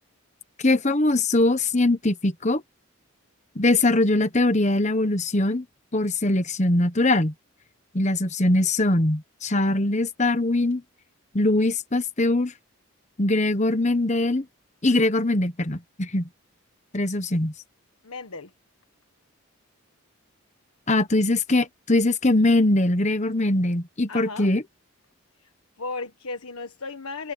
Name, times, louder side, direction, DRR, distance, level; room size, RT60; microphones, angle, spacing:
voice 1, 0.6-2.6 3.5-5.6 5.9-7.3 7.9-10.8 11.3-12.5 13.2-14.4 14.8-16.3 16.9-17.5 20.9-24.6, left 2 dB, 35° left, 1.2 m, -22 dB
voice 2, 18.0-18.5 24.1-24.5 25.4-25.5 25.8-27.3, left 3 dB, 90° left, 1.4 m, -35 dB
head